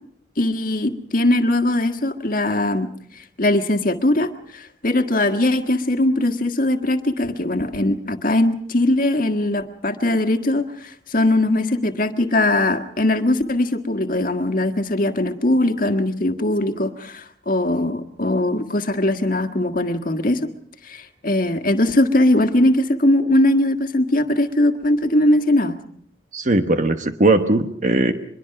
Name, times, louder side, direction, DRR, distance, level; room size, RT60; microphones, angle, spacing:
voice 1, 0.4-2.9 3.4-20.5 20.8-25.8, left 1 dB, 50° left, 7 dB, 1.7 m, -20 dB
voice 2, 26.3-28.1, right 2 dB, 45° right, 7 dB, 1.1 m, -18 dB
24.5 x 22.0 x 5.9 m, 0.64 s
head